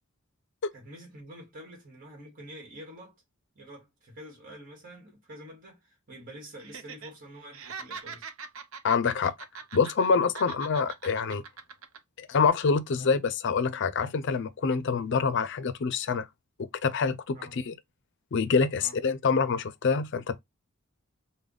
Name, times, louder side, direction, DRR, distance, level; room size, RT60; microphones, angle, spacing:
voice 1, 0.7-3.2 3.5-8.3 12.9-13.1 17.3-17.6 18.8-19.0, equal, 40° right, 1.4 m, -47 dB
Laughter, 6.6-7.1 7.4-10.1 10.3-12.0 12.3-12.5, right 5 dB, 75° right, 0.6 m, -42 dB
voice 2, 8.8-9.3 9.7-11.4 12.2-16.3 16.8-17.7 18.3-20.4, left 5 dB, 60° left, 0.5 m, -26 dB
3.3 x 2.2 x 3.7 m
head